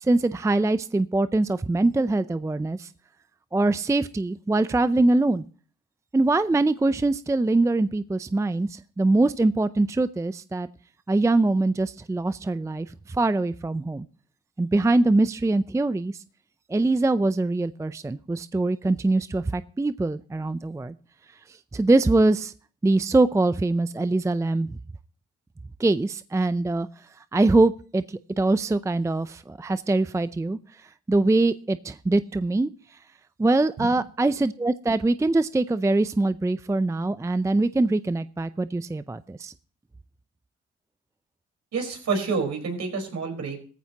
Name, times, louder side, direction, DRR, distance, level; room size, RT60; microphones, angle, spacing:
voice 1, 0.0-2.9 3.5-5.4 6.1-10.7 11.1-14.1 14.6-16.1 16.7-20.9 21.7-22.5 22.8-24.8 25.8-26.9 27.3-32.7 33.4-39.5, right 2 dB, 10° right, 14 dB, 0.5 m, -23 dB
voice 2, 41.7-43.6, right 4 dB, 60° right, 3 dB, 4.8 m, -28 dB
17.0 x 14.5 x 2.9 m, 0.42 s
supercardioid pair, 65°, 30 cm